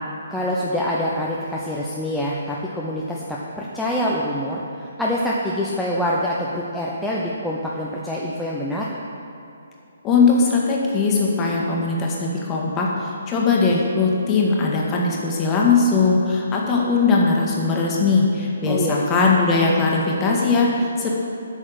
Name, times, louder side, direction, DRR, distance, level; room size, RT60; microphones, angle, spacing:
voice 1, 0.3-8.9 18.7-19.0, equal, ahead, -6 dB, 0.7 m, -25 dB
voice 2, 10.0-21.1, left 4 dB, 20° left, -2 dB, 1.6 m, -20 dB
8.9 x 6.3 x 7.7 m, 2.8 s
figure-of-eight pair, 135°, 0 cm